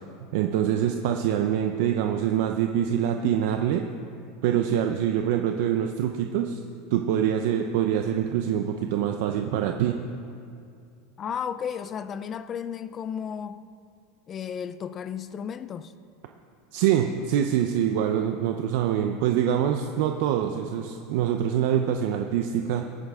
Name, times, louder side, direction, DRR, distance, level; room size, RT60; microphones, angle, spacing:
voice 1, 0.3-3.9 4.4-6.6 6.9-10.0 16.7-22.8, right 9 dB, 55° right, 0.6 m, -25 dB
voice 2, 11.2-13.6 14.3-15.9, left 8 dB, 20° left, 0.4 m, -33 dB
23.0 x 9.1 x 3.6 m
supercardioid pair, 180°, 0 cm